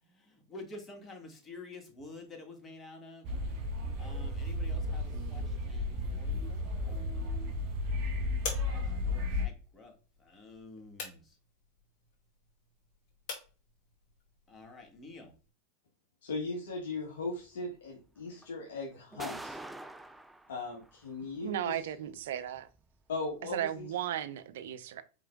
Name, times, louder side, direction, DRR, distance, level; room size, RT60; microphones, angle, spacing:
voice 1, 0.0-7.5 8.7-9.9 10.2-11.4 14.5-15.3, left 3 dB, 20° left, 1.6 m, -50 dB
sound 1, 3.2-9.5, left 2 dB, 50° right, 1.6 m, -33 dB
sound 2, 6.3-15.5, left 5 dB, 50° left, 2.0 m, -48 dB
voice 2, 16.2-19.6 20.5-21.7 23.1-23.9, left 3 dB, 75° left, 1.3 m, -38 dB
sound 3, 17.4-17.5 18.4-18.5 18.9-21.0 22.6-22.8 23.7-23.8, right 1 dB, 5° right, 0.4 m, -45 dB
voice 3, 21.4-22.7 23.5-25.0, right 10 dB, 70° right, 0.5 m, -35 dB
4.8 x 3.8 x 2.2 m
hypercardioid pair, 95°, 0 cm